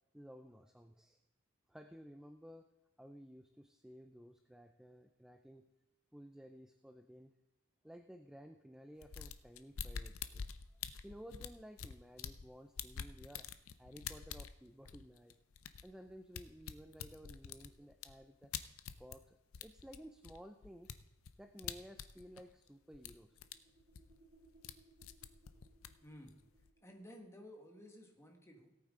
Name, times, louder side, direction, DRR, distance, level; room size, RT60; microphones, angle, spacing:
voice 1, 0.1-1.2 1.7-2.7 3.0-5.7 6.1-7.3 7.8-10.5 11.0-13.5 13.8-15.4 15.8-18.5 19.0-21.0 21.4-23.5, equal, 5° right, 7 dB, 0.4 m, -55 dB
sound 1, 9.0-12.5 12.8-19.2 19.5-22.7 22.9-23.5 23.8-24.8 25.0-26.7, left 7 dB, 70° left, 0.6 m, -47 dB
sound 2, 22.7-27.2, right 2 dB, 45° right, 1.7 m, -69 dB
voice 2, 26.0-26.4 26.8-28.7, equal, 15° left, 2 dB, 1.5 m, -55 dB
17.0 x 8.9 x 3.7 m, 0.98 s
head